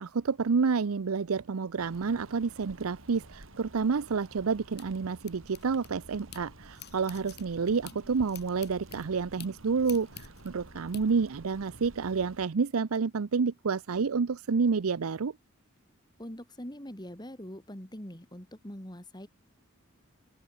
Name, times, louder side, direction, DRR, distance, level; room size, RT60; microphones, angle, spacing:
voice 1, 0.0-15.3, right 5 dB, 85° right, 0.6 m, -29 dB
sound 1, 1.8-12.5, right 1 dB, 65° right, 4.5 m, -51 dB
sound 2, 4.1-6.4 6.7-11.0, left 8 dB, 50° left, 7.7 m, -50 dB
voice 2, 16.2-19.3, equal, 20° left, 3.9 m, -43 dB
open air
head